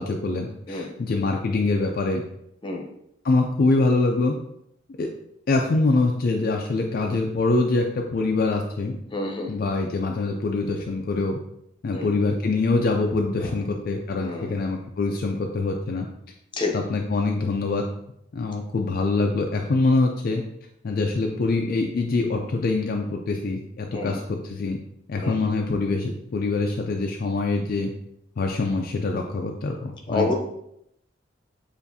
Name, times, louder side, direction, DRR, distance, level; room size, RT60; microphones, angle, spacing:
voice 1, 0.0-2.2 3.2-4.4 5.0-5.1 5.5-9.0 9.5-11.4 11.8-16.1 16.7-17.8 18.3-20.4 20.8-24.8 25.1-27.9 28.4-30.3, left 3 dB, 50° left, 2 dB, 0.4 m, -24 dB
voice 2, 9.1-9.5 11.9-12.1 14.2-14.5 16.6-16.7 23.9-24.1 25.2-25.4 30.1-30.3, left 2 dB, 25° left, 1 dB, 0.7 m, -27 dB
6.9 x 2.5 x 2.7 m, 0.77 s
head